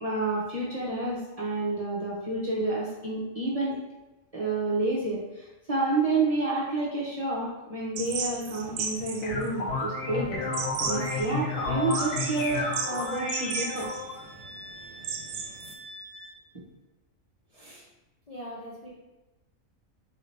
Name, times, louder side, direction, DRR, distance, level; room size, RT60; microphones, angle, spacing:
voice 1, 0.0-3.7 4.3-10.4 10.9-13.9, right 2 dB, 35° right, -7 dB, 0.7 m, -29 dB
sound 1, 8.0-15.7, right 5 dB, 85° right, 1.0 m, -36 dB
sound 2, 9.0-14.2, left 3 dB, 75° left, 1.1 m, -31 dB
Wind instrument woodwind instrument, 11.5-16.4, right 2 dB, 65° right, 0.3 m, -46 dB
voice 2, 17.5-17.9 18.3-18.9, equal, 45° left, -5 dB, 0.5 m, -42 dB
4.0 x 2.7 x 3.2 m, 1.0 s
omnidirectional pair, 1.4 m